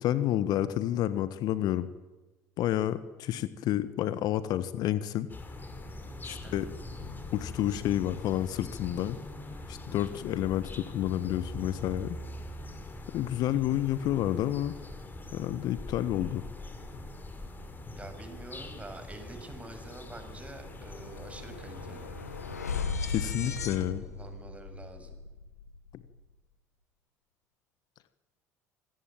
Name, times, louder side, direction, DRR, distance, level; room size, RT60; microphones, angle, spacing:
voice 1, 0.0-1.9 2.6-5.3 6.2-6.7 7.3-9.2 9.7-12.2 13.1-14.7 15.3-16.4 23.1-24.0, left 12 dB, 55° left, 14 dB, 1.4 m, -29 dB
sound 1, 5.3-22.8, left 2 dB, 25° left, 5.2 m, -43 dB
voice 2, 6.4-6.7 17.9-22.1 23.3-23.7 24.0-25.1, right 2 dB, 15° right, 7 dB, 6.6 m, -47 dB
sound 2, 19.6-19.7 20.0-26.2, left 5 dB, 85° left, 1.9 m, -38 dB
26.5 x 19.5 x 9.0 m, 1.1 s
figure-of-eight pair, 60°, 8 cm